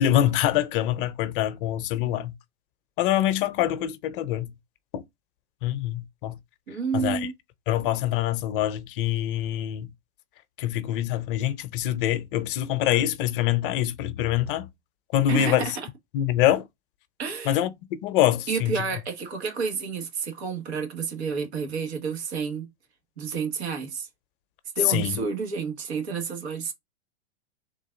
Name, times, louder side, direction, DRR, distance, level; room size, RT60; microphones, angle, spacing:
voice 1, 0.0-2.3 3.0-4.5 4.9-5.0 5.6-6.4 6.9-7.3 7.7-9.9 10.6-14.7 15.1-15.7 16.1-16.6 17.5-18.7 24.9-25.1, left 12 dB, 50° left, 0.7 m, -25 dB
voice 2, 6.7-7.3 15.3-15.9 17.2-17.7 18.5-22.7 23.2-24.1 24.7-26.7, right 5 dB, 70° right, 1.5 m, -30 dB
3.9 x 2.6 x 3.7 m
hypercardioid pair, 110°, 34 cm